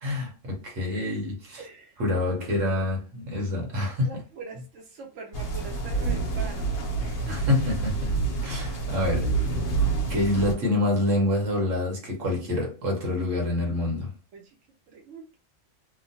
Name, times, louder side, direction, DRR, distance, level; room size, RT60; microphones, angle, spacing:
voice 1, 0.0-1.7 2.0-4.1 7.3-9.5 10.1-14.1, left 2 dB, 90° right, 1.4 m, -27 dB
voice 2, 1.6-2.0 4.0-7.4 14.3-14.6 14.9-15.4, right 5 dB, 75° right, 0.9 m, -43 dB
sound 1, 5.3-10.5, right 4 dB, 50° left, 0.9 m, -28 dB
3.0 x 2.1 x 2.7 m
omnidirectional pair, 1.3 m